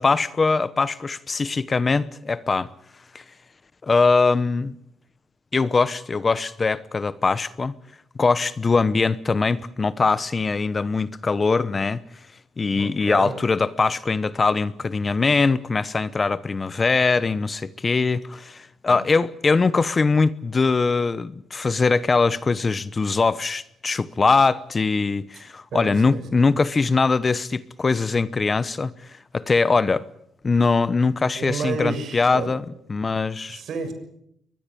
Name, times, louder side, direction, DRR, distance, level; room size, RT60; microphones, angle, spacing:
voice 1, 0.0-2.7 3.1-3.2 3.8-4.7 5.5-7.7 8.2-12.0 12.6-30.1 30.4-33.6, left 4 dB, 30° left, 1.0 m, -22 dB
voice 2, 12.7-13.4 18.9-19.0 25.7-26.2 31.4-32.5 33.5-33.9, right 5 dB, 65° right, 6.6 m, -30 dB
23.0 x 21.0 x 8.6 m
cardioid pair, 90°, 0 cm